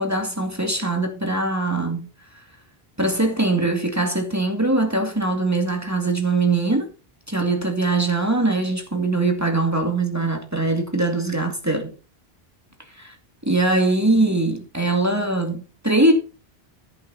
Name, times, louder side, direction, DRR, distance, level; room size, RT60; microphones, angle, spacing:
voice 1, 0.0-2.1 3.0-6.9 7.3-11.9 13.0-13.1 13.5-16.1, right 2 dB, 15° right, 2.3 m, -22 dB
11.0 x 9.2 x 4.2 m
omnidirectional pair, 1.1 m